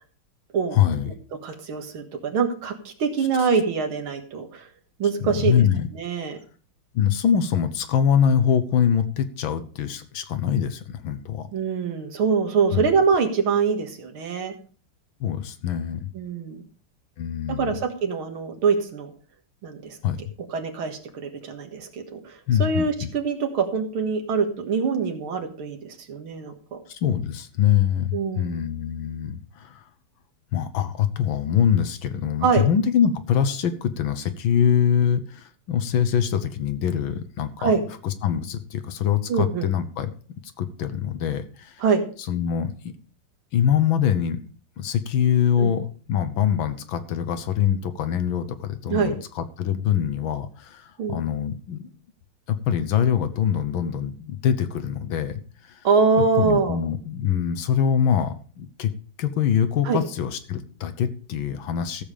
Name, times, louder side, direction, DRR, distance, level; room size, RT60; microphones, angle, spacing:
voice 1, 0.7-1.1 3.4-3.5 5.2-5.9 6.9-11.5 12.7-12.9 15.2-16.1 17.2-17.8 20.0-20.3 22.5-23.1 26.9-29.8 30.5-37.7 38.0-40.1 40.6-41.8 42.2-42.9 43.5-44.4 44.8-51.9 52.5-55.9 56.4-58.9 59.2-62.0, left 8 dB, 70° left, 11 dB, 1.6 m, -24 dB
voice 2, 1.4-4.7 5.0-5.5 5.9-6.4 11.5-14.5 16.1-16.6 17.5-19.1 19.6-20.0 20.5-26.8 28.1-28.6 32.4-32.7 37.6-37.8 39.3-39.7 41.8-42.0 45.6-45.7 48.9-49.1 51.0-51.2 55.8-56.8 59.9-60.0, right 5 dB, 75° right, 5 dB, 2.4 m, -24 dB
14.0 x 7.2 x 4.9 m, 0.41 s
omnidirectional pair, 2.4 m